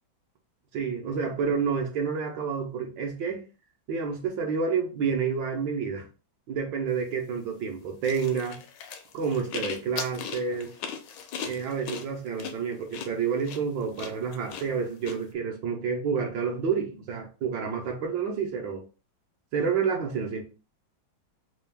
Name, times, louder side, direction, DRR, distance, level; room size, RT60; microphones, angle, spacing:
voice 1, 0.7-3.4 3.9-6.1 6.5-8.6 9.1-10.7 11.4-18.8 19.5-20.4, right 6 dB, 70° right, 1.5 m, -29 dB
sound 1, 8.0-15.1, left 7 dB, 75° left, 1.2 m, -38 dB
3.8 x 2.4 x 3.3 m
omnidirectional pair, 2.2 m